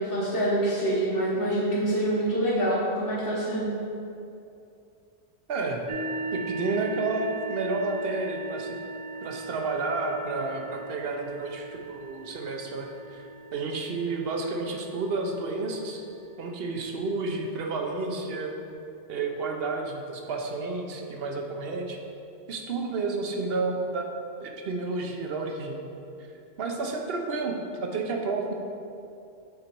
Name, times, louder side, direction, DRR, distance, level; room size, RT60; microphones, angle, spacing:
voice 1, 0.0-3.6, right 1 dB, 50° left, -10 dB, 1.4 m, -26 dB
voice 2, 5.5-6.0 6.3-8.8 9.2-13.2 13.5-16.0 16.4-18.5 19.1-22.0 22.5-25.8 26.6-28.5, right 3 dB, 60° right, 2 dB, 0.9 m, -31 dB
sound 1, 5.9-17.4, right 3 dB, 35° right, 0.6 m, -39 dB
7.7 x 4.0 x 4.5 m, 2.6 s
omnidirectional pair, 1.2 m